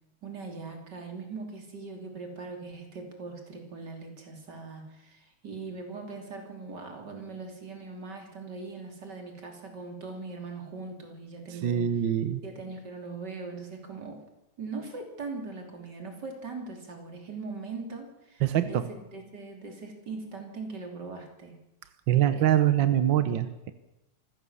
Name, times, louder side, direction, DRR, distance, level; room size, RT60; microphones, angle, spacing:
voice 1, 0.2-11.8 12.4-14.2 14.6-21.6 22.3-22.8, right 4 dB, 35° right, 3 dB, 3.4 m, -40 dB
voice 2, 11.5-12.4 18.4-18.9 22.1-23.7, right 11 dB, 70° right, 11 dB, 1.1 m, -24 dB
25.0 x 15.5 x 7.1 m, 0.94 s
omnidirectional pair, 3.5 m